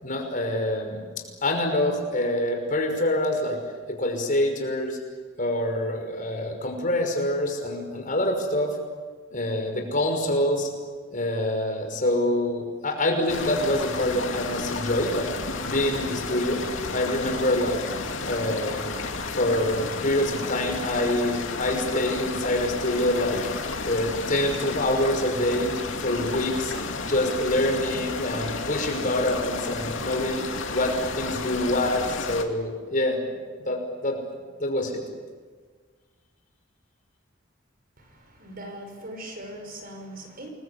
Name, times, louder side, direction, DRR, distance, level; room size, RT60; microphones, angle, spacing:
voice 1, 0.0-3.6 3.9-5.0 5.4-8.8 9.3-10.7 11.1-15.3 15.7-16.6 16.9-17.8 18.2-25.7 26.0-26.7 27.0-30.4 30.7-33.2 33.6-34.2 34.6-34.9, left 1 dB, 45° left, 3 dB, 5.7 m, -26 dB
sound 1, 13.3-32.4, left 3 dB, 80° left, 2.6 m, -32 dB
voice 2, 38.0-40.5, right 1 dB, 50° right, 4 dB, 5.9 m, -40 dB
28.5 x 22.0 x 8.4 m, 1.5 s
head